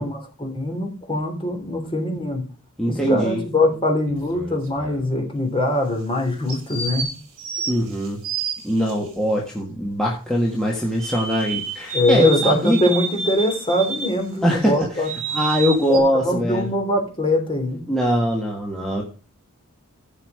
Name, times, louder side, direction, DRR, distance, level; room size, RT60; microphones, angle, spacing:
voice 1, 0.0-2.5 2.9-7.1 11.9-15.1 15.9-17.8, left 1 dB, 25° left, 2 dB, 3.2 m, -22 dB
voice 2, 2.8-3.4 7.7-8.2 8.6-12.8 14.4-15.0 15.3-16.7 17.9-19.0, equal, 5° left, -3 dB, 1.7 m, -22 dB
sound 1, 4.1-5.0 6.5-8.9 11.0-14.2 14.6-16.0, right 4 dB, 60° right, 4.2 m, -29 dB
14.5 x 5.7 x 4.9 m, 0.35 s
head